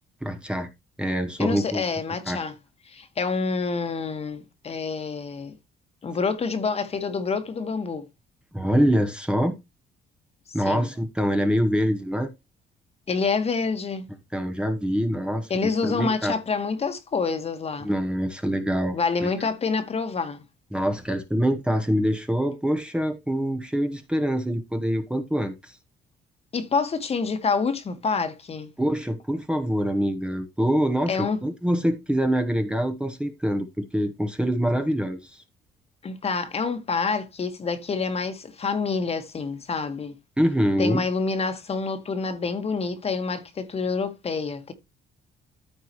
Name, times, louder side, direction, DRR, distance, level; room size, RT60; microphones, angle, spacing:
voice 1, 0.2-0.7 1.0-1.8 2.3-2.4 8.5-9.5 10.5-12.3 14.3-16.3 17.8-19.0 19.2-19.3 20.7-25.8 28.8-35.4 40.4-41.0, equal, 5° right, 1.0 m, -25 dB
voice 2, 1.4-2.5 2.8-5.5 6.0-8.1 10.6-10.9 13.1-14.1 15.5-17.9 18.9-20.4 26.5-28.7 31.1-31.4 36.0-40.1 40.8-44.7, left 4 dB, 35° left, 1.4 m, -27 dB
13.5 x 4.7 x 3.0 m
cardioid pair, 125°, 18 cm